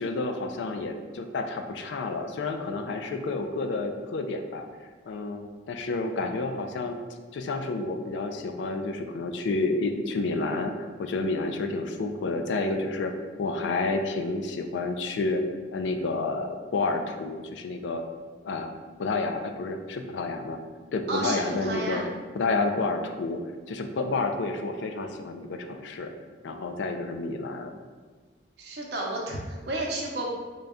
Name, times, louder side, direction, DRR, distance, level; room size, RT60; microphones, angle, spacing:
voice 1, 0.0-4.6 5.1-7.0 7.3-13.1 13.4-15.4 15.7-18.0 18.4-18.7 19.0-20.6 20.9-22.0 22.3-23.4 23.7-26.1 26.4-27.7, left 3 dB, 85° left, 6 dB, 0.4 m, -30 dB
voice 2, 21.1-22.1 28.6-30.3, right 2 dB, 70° right, -1 dB, 0.7 m, -31 dB
3.8 x 2.2 x 3.5 m, 1.4 s
head